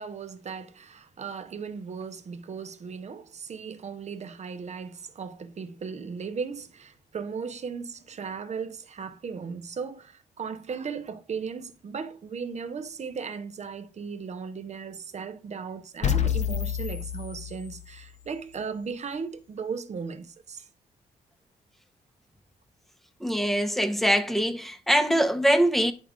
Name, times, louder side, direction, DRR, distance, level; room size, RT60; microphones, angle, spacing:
voice 1, 0.0-20.7, right 5 dB, 45° right, 0.9 m, -37 dB
sound 1, 16.0-18.1, left 9 dB, 45° left, 0.8 m, -28 dB
voice 2, 23.2-25.9, equal, ahead, 0.9 m, -23 dB
10.0 x 3.6 x 3.6 m
cardioid pair, 90°, 16 cm